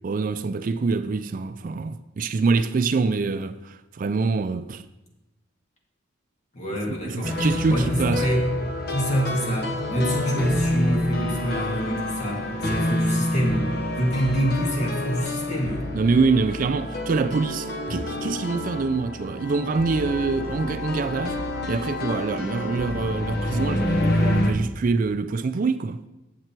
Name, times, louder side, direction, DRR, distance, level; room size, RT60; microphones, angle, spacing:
voice 1, 0.0-4.8 6.9-8.3 15.9-21.4 21.7-26.0, right 4 dB, 45° right, 0.4 m, -25 dB
voice 2, 6.5-8.5 8.9-15.9, equal, 40° left, 2.1 m, -26 dB
sound 1, 7.2-24.5, left 1 dB, 55° left, 1.0 m, -28 dB
8.2 x 7.5 x 4.5 m
head